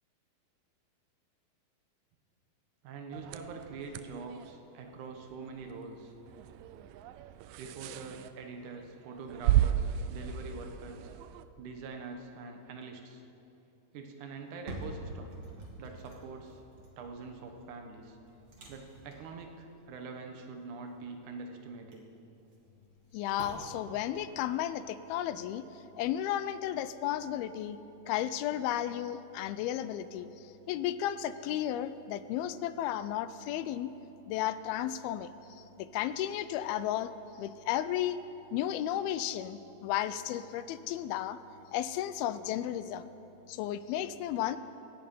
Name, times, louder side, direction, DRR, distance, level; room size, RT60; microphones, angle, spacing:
voice 1, 2.8-6.1 7.6-11.1 11.6-13.2 13.9-15.3 15.8-16.6 17.0-18.2 18.7-22.1, right 4 dB, 65° right, 4 dB, 2.3 m, -44 dB
sound 1, 3.1-11.4, right 11 dB, 90° right, 1.9 m, -35 dB
sound 2, 14.4-26.4 26.8-26.9, right 1 dB, 45° right, 3.2 m, -48 dB
voice 2, 23.1-25.6 26.0-27.8 28.1-30.3 30.7-33.9 34.3-35.3 35.8-37.1 37.4-38.2 38.5-41.4 41.7-43.1 43.5-44.6, left 11 dB, 85° left, 13 dB, 2.4 m, -33 dB
26.5 x 10.0 x 5.4 m, 3.0 s
omnidirectional pair, 4.5 m